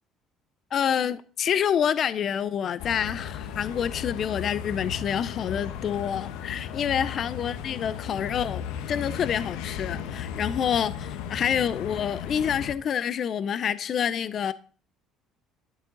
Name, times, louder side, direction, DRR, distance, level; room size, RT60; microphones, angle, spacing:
voice 1, 0.7-14.5, left 8 dB, 35° left, 0.4 m, -27 dB
sound 1, 2.8-12.7, left 8 dB, 90° left, 1.2 m, -35 dB
11.5 x 11.0 x 3.9 m
cardioid pair, 170°, 0 cm